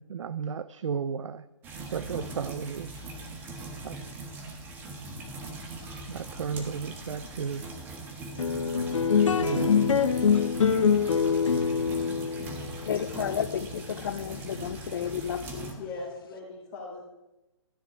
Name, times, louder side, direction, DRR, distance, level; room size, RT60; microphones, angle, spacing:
voice 1, 0.0-1.4 1.9-2.9 3.8-4.0 6.1-7.7 9.4-10.1, right 6 dB, 80° right, 0.5 m, -34 dB
sound 1, 1.6-15.7, right 2 dB, 10° right, 1.4 m, -41 dB
sound 2, 8.4-15.0, left 6 dB, 90° left, 0.9 m, -25 dB
voice 2, 12.8-15.8, left 8 dB, 45° left, 0.5 m, -32 dB
voice 3, 15.8-17.0, left 3 dB, 25° left, 2.4 m, -39 dB
13.5 x 6.5 x 7.9 m
hypercardioid pair, 165°, 16 cm